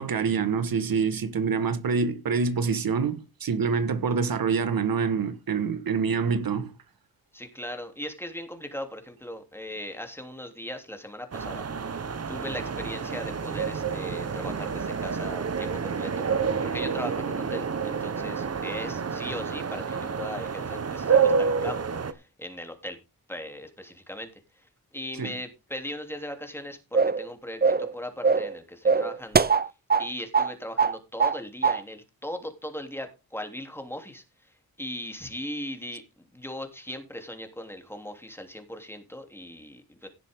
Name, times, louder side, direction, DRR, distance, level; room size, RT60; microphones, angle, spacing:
voice 1, 0.0-6.7 25.2-25.3, right 5 dB, 70° right, 1.6 m, -26 dB
voice 2, 7.3-16.3 16.6-21.8 22.1-23.0 23.3-24.3 24.5-24.7 24.9-29.5 30.0-36.0 36.3-40.1, left 1 dB, 5° left, 3.0 m, -38 dB
sound 1, 11.3-22.1, right 6 dB, 45° right, 1.2 m, -28 dB
sound 2, 26.9-27.3 27.6-27.9 28.2-28.5 28.9-30.1 30.3-30.5 30.8-31.4 31.6-31.8, right 5 dB, 25° right, 0.7 m, -22 dB
17.0 x 7.4 x 3.7 m
wide cardioid pair, 90°, 36 cm